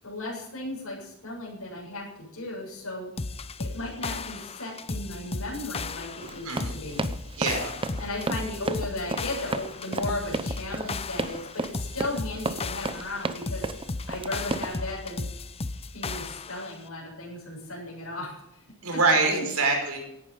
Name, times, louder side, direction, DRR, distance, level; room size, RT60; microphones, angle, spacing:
voice 1, 0.0-3.1 3.6-7.0 8.0-13.6 14.1-15.3 15.9-18.6 18.9-19.0, left 2 dB, 75° left, -5 dB, 7.6 m, -35 dB
sound 1, 3.2-16.7, left 3 dB, 30° left, 0.7 m, -35 dB
Run, 6.2-14.7, right 3 dB, 25° right, 0.8 m, -32 dB
voice 2, 6.3-6.7 7.4-7.8 18.8-20.0, right 3 dB, 85° right, 2 dB, 5.2 m, -25 dB
16.5 x 11.5 x 5.3 m, 0.88 s
head